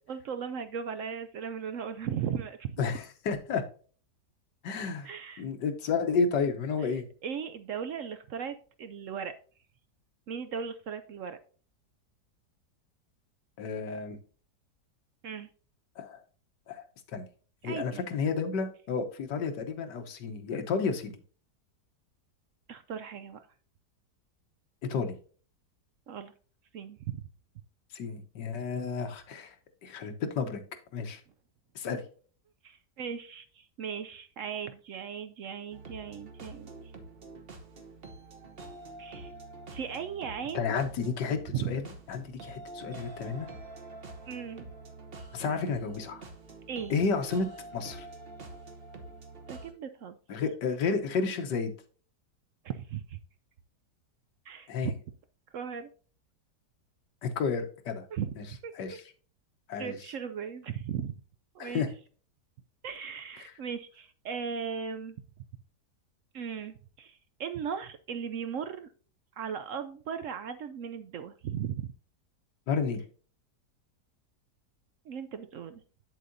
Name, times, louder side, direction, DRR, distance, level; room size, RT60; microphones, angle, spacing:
voice 1, 0.1-2.8 5.0-5.5 6.8-6.9 7.2-9.3 10.3-11.4 15.2-15.5 17.6-18.0 22.7-23.5 26.1-26.3 26.7-27.2 32.6-36.7 39.0-39.3 39.7-40.7 41.5-41.7 44.3-44.7 46.7-46.9 49.5-50.2 52.6-53.2 54.5-54.9 55.5-55.9 58.1-58.3 58.6-58.7 59.8-61.1 61.5-61.9 62.8-65.2 66.3-68.9 69.4-71.9 75.1-75.8, right 7 dB, 65° right, 10 dB, 0.8 m, -37 dB
voice 2, 2.8-3.6 4.6-5.1 5.4-7.0 13.6-14.2 16.0-16.2 16.7-16.8 17.1-17.3 17.6-21.2 24.9-25.1 27.9-29.6 29.8-30.6 30.9-31.2 31.7-32.0 40.5-41.8 42.1-43.5 45.3-46.2 46.9-47.5 47.7-48.1 50.3-51.7 54.7-54.9 57.2-58.0 58.7-59.0 59.7-60.0 61.6-61.9 72.7-73.0, left 5 dB, 85° left, 6 dB, 1.6 m, -31 dB
sound 1, 35.7-49.7, right 2 dB, 40° right, 1.1 m, -46 dB
8.2 x 7.5 x 2.6 m, 0.41 s
omnidirectional pair, 1.8 m